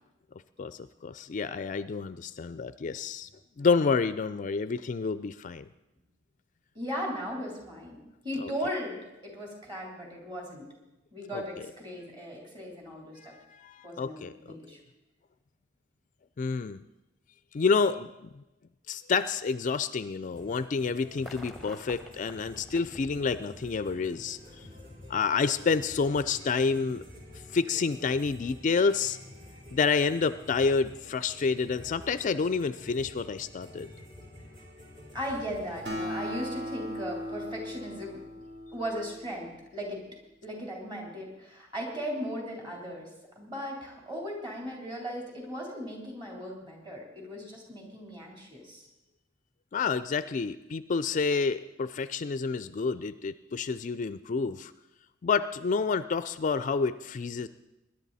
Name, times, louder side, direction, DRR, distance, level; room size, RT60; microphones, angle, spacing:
voice 1, 0.6-3.3 3.6-5.7 8.4-8.5 11.3-11.4 13.2-14.3 16.4-16.8 17.5-18.3 18.9-24.4 25.1-27.0 27.5-29.2 29.7-33.9 49.7-54.7 55.2-57.5, left 5 dB, 40° left, 14 dB, 0.4 m, -29 dB
voice 2, 6.7-8.0 8.2-10.7 11.1-13.3 13.8-14.8 35.1-38.2 38.7-40.0 40.4-43.1 43.4-48.9, equal, 25° right, -1 dB, 3.6 m, -37 dB
sound 1, 20.3-36.0, left 1 dB, 45° right, 3.8 m, -49 dB
sound 2, 21.1-24.2 25.3-25.4, left 1 dB, ahead, 0.9 m, -49 dB
Acoustic guitar, 35.9-39.6, equal, 60° right, 2.8 m, -38 dB
21.0 x 11.0 x 4.1 m, 0.97 s
head